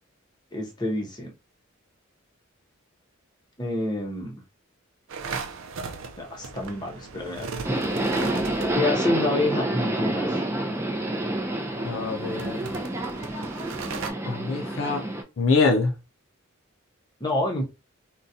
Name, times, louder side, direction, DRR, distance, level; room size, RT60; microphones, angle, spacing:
voice 1, 0.5-1.3 3.6-4.4 6.2-7.8 8.7-10.5 17.2-17.6, left 2 dB, 20° left, 0.8 m, -28 dB
sound 1, 5.1-9.1 11.0-14.1, right 5 dB, 65° right, 0.5 m, -38 dB
Subway metro underground, 7.6-15.2, right 1 dB, 15° right, 0.5 m, -28 dB
voice 2, 11.8-12.7 14.2-15.1 15.4-15.9, left 4 dB, 70° left, 0.5 m, -24 dB
3.8 x 2.2 x 2.7 m
head